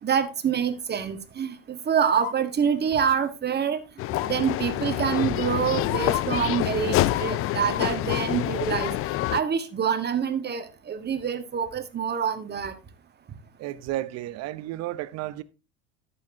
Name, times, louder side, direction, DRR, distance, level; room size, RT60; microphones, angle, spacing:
voice 1, 0.0-3.8 4.2-8.9 9.3-12.7, right 7 dB, 30° right, 1.5 m, -26 dB
sound 1, 2.0-2.3 2.9-3.2 4.1-4.5 5.4-5.5 5.8-6.2 7.0-8.3 8.6-8.7, left 13 dB, 65° left, 1.0 m, -34 dB
sound 2, 4.0-9.4, left 15 dB, 40° left, 0.5 m, -27 dB
voice 2, 13.6-15.4, right 15 dB, 50° right, 0.9 m, -32 dB
11.5 x 8.5 x 2.8 m
hypercardioid pair, 75°, 33 cm